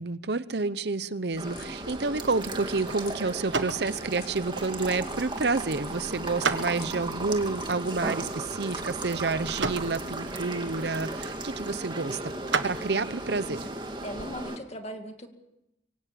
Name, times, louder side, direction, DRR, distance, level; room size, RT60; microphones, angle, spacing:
voice 1, 0.0-12.2 12.6-13.7, right 3 dB, 65° right, 0.8 m, -29 dB
sound 1, 1.3-11.7, left 3 dB, 60° left, 2.4 m, -51 dB
sound 2, 1.4-14.6, right 2 dB, 25° right, 2.2 m, -36 dB
sound 3, 1.8-14.4, right 4 dB, 85° right, 1.5 m, -37 dB
voice 2, 14.0-15.3, equal, 35° left, 2.3 m, -38 dB
24.5 x 17.5 x 8.5 m
head